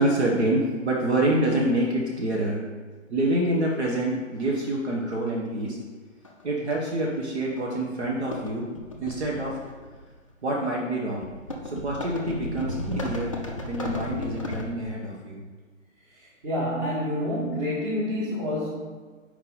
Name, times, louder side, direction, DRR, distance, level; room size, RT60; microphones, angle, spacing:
voice 1, 0.0-2.6 3.1-5.8 6.4-8.7 9.0-9.6 10.4-11.3 11.6-13.3 13.7-15.4, right 1 dB, 55° right, -2 dB, 1.1 m, -26 dB
sound 1, 4.7-4.8 6.2-6.4 6.7-6.9 7.6-7.8 8.0-10.1 11.2-14.7, left 1 dB, 25° left, 0.4 m, -34 dB
voice 2, 16.1-18.7, left 1 dB, 20° right, -5 dB, 1.4 m, -28 dB
5.4 x 4.7 x 3.9 m, 1.4 s
figure-of-eight pair, 140°, 40 cm